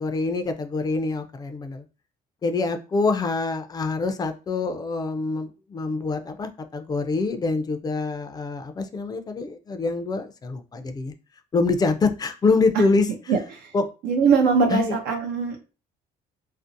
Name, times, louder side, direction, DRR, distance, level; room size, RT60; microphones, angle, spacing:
voice 1, 0.0-1.8 2.4-11.1 11.5-13.1 13.7-13.9 14.7-15.0, left 3 dB, 25° left, 8 dB, 0.4 m, -25 dB
voice 2, 13.3-13.7 14.0-15.7, right 5 dB, 80° right, 3 dB, 0.5 m, -21 dB
2.6 x 2.0 x 2.5 m, 0.32 s
cardioid pair, 110°, 17 cm